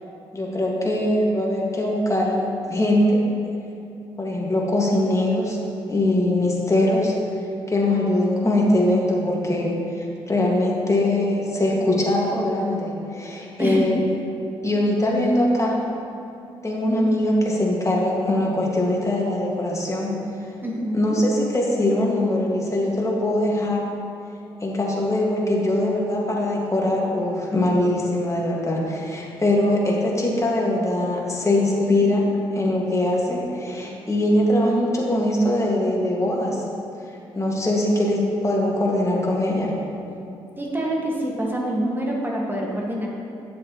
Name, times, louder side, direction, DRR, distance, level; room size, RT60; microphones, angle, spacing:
voice 1, 0.3-3.2 4.2-5.6 5.9-7.1 7.7-14.0 14.6-15.8 16.6-20.1 20.9-23.8 24.6-32.2 32.5-36.6 37.3-39.8, left 1 dB, 25° left, -3 dB, 1.9 m, -22 dB
voice 2, 20.6-21.2 40.6-43.1, right 1 dB, 15° right, -3 dB, 1.8 m, -26 dB
9.2 x 7.3 x 3.1 m, 2.8 s
supercardioid pair, 50°, 12 cm